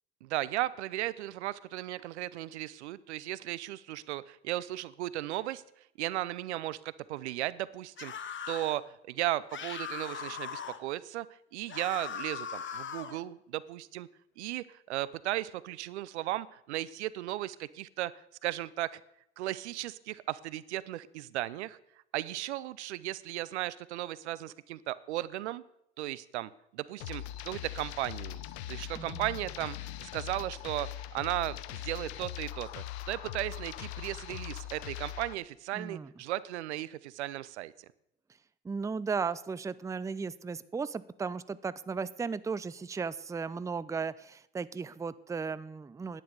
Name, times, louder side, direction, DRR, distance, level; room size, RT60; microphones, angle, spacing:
voice 1, 0.2-5.6 6.0-8.1 8.5-11.3 11.5-14.1 14.4-18.1 18.4-19.0 19.4-21.8 22.1-25.6 26.0-28.4 28.7-37.9, right 15 dB, 80° right, 19 dB, 0.7 m, -36 dB
sound 1, 8.0-8.8 9.5-10.8 11.7-13.2, left 7 dB, 35° left, 1.5 m, -39 dB
sound 2, 27.0-35.3, left 13 dB, 70° left, 0.9 m, -41 dB
voice 2, 29.0-29.3 35.7-36.1 38.6-46.2, right 5 dB, 10° right, 17 dB, 0.5 m, -36 dB
11.0 x 10.0 x 6.7 m, 0.77 s
hypercardioid pair, 75°, 34 cm